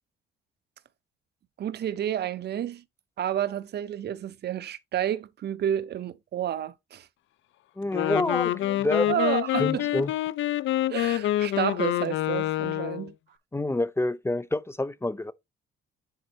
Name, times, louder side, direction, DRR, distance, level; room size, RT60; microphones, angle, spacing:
voice 1, 1.6-2.8 3.2-7.1 9.1-9.8 10.9-13.1, right 10 dB, 55° right, 0.6 m, -30 dB
Wind instrument woodwind instrument, 7.8-13.1, left 14 dB, 75° left, 0.6 m, -27 dB
voice 2, 7.8-9.1 9.6-10.1 13.5-15.3, left 2 dB, 10° left, 0.5 m, -28 dB
9.8 x 4.3 x 2.8 m
cardioid pair, 90°, 20 cm